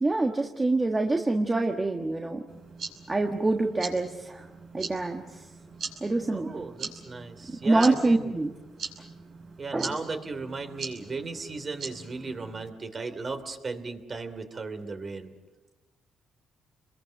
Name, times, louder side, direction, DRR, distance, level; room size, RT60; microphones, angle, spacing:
voice 1, 0.0-2.4 3.1-4.4 4.7-5.2 6.0-6.6 7.6-8.5 9.7-9.9, right 2 dB, 20° right, 3 dB, 1.5 m, -25 dB
sound 1, 2.5-12.7, right 5 dB, 60° right, 5.6 m, -42 dB
voice 2, 6.3-8.3 9.6-15.3, right 3 dB, 35° right, 8 dB, 3.0 m, -36 dB
29.0 x 21.5 x 6.6 m, 1.2 s
cardioid pair, 90°, 0 cm